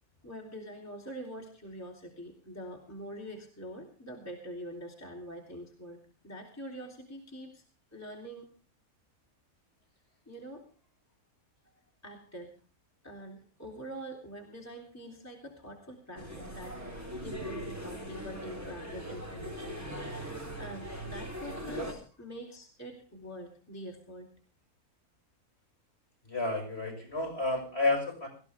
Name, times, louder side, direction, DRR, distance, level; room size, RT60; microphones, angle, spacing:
voice 1, 0.2-6.0 6.2-7.6 7.9-8.5 10.3-10.6 11.7-12.5 13.0-24.3, equal, 10° left, -1 dB, 3.3 m, -45 dB
sound 1, 16.2-21.9, right 1 dB, 10° right, 3.7 m, -40 dB
voice 2, 26.2-28.3, left 2 dB, 45° left, 4 dB, 5.9 m, -30 dB
19.0 x 15.5 x 3.5 m, 0.38 s
omnidirectional pair, 1.5 m